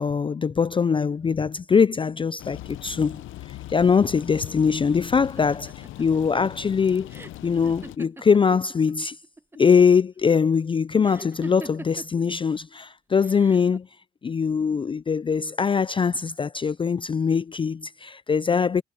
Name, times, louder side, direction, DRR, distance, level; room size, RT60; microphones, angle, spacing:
voice 1, 0.0-3.2 3.7-7.1 7.4-9.2 9.6-13.9 14.2-18.8, left 6 dB, 25° left, 0.4 m, -22 dB
sound 1, 2.4-8.0, left 15 dB, 80° left, 0.8 m, -40 dB
sound 2, 5.4-8.9 9.2-9.9 11.0-12.2 13.2-13.8, right 2 dB, 10° right, 1.0 m, -43 dB
cardioid pair, 90°, 20 cm